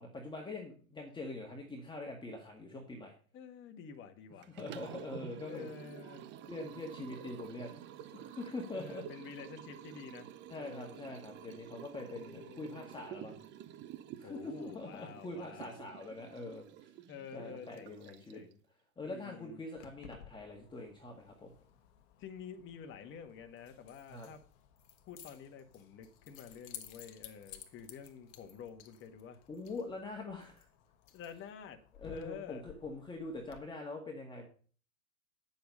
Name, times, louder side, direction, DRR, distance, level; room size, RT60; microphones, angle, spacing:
voice 1, 0.0-3.1 4.5-5.7 6.5-9.0 10.5-13.4 14.2-16.6 17.3-18.4 19.0-21.5 24.1-24.3 29.5-30.7 32.0-34.5, left 2 dB, 10° left, 1.8 m, -44 dB
voice 2, 3.3-4.5 5.5-6.3 8.7-11.1 12.2-12.9 14.2-15.9 17.1-18.6 19.0-19.6 22.2-24.4 25.1-29.4 31.1-31.8 32.1-32.6, left 7 dB, 30° left, 1.5 m, -49 dB
Liquid, 4.4-18.5, right 10 dB, 25° right, 0.7 m, -50 dB
Keys jangling, 19.7-33.6, left 10 dB, 50° left, 1.6 m, -56 dB
9.4 x 7.2 x 5.3 m
hypercardioid pair, 115°, 42 cm